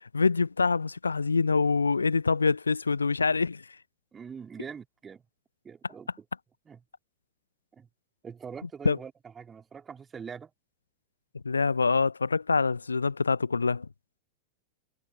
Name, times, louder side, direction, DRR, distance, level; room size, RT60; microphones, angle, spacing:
voice 1, 0.0-3.6 8.8-9.0 11.4-13.9, left 4 dB, 75° left, 0.6 m, -25 dB
voice 2, 4.1-5.2 5.6-6.2 6.7-6.8 7.7-7.9 8.2-10.5, right 6 dB, 20° right, 2.7 m, -43 dB
figure-of-eight pair, 90°, 0 cm